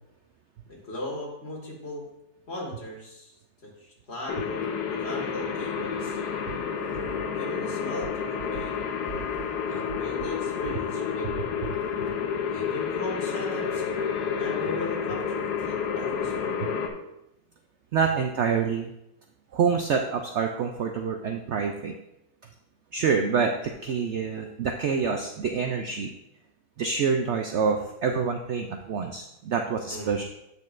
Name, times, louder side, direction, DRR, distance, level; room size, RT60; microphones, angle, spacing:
voice 1, 0.7-2.0 2.5-3.4 3.6-4.6 4.9-6.2 6.9-7.0 7.3-8.2 8.5-8.7 9.7-11.3 12.5-13.9 14.4-16.5 29.9-30.2, left 1 dB, 40° left, -3 dB, 2.1 m, -38 dB
sound 1, 4.3-16.9, left 6 dB, 85° left, 1.3 m, -30 dB
voice 2, 17.9-18.9 19.5-21.9 22.9-26.1 26.8-30.3, right 6 dB, 70° right, 3 dB, 0.7 m, -27 dB
8.3 x 6.7 x 2.5 m, 0.85 s
omnidirectional pair, 1.7 m